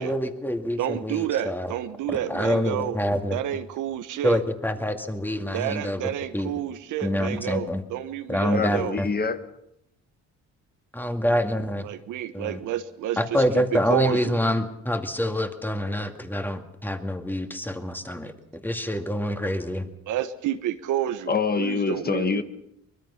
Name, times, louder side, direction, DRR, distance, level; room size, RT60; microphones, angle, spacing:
voice 1, 0.0-1.7 2.3-3.4 4.2-6.5 7.0-7.8 8.3-9.1 10.9-11.9 12.3-12.6 13.2-19.9, equal, 5° left, 6 dB, 2.3 m, -26 dB
voice 2, 0.8-3.0 3.3-4.4 5.5-9.0 11.8-14.4 20.1-22.4, right 11 dB, 85° right, 10 dB, 1.3 m, -30 dB
voice 3, 8.4-9.4 21.3-22.4, left 5 dB, 30° left, 10 dB, 1.4 m, -25 dB
24.0 x 21.0 x 5.8 m, 0.79 s
cardioid pair, 90°, 30 cm